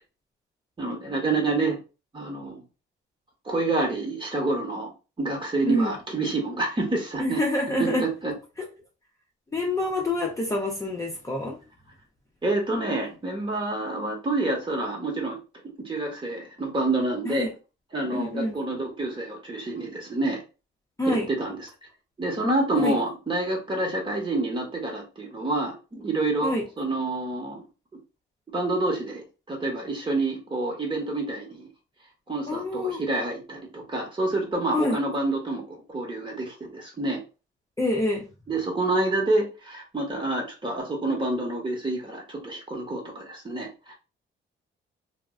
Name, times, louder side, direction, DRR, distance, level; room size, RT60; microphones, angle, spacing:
voice 1, 0.8-1.8 2.1-2.6 3.4-4.9 5.2-7.4 7.8-8.3 12.4-15.4 15.8-17.5 17.9-20.4 21.0-21.6 22.2-27.6 28.5-31.7 32.3-37.2 38.5-43.9, right 2 dB, 25° right, 0 dB, 1.0 m, -28 dB
voice 2, 7.2-8.0 9.5-11.6 17.3-17.5 18.1-18.6 21.0-21.3 22.7-23.0 26.4-26.6 32.5-33.0 34.7-35.0 37.8-38.3, left 1 dB, 15° left, -1 dB, 0.6 m, -26 dB
2.3 x 2.1 x 3.5 m, 0.31 s
cardioid pair, 90°, 20 cm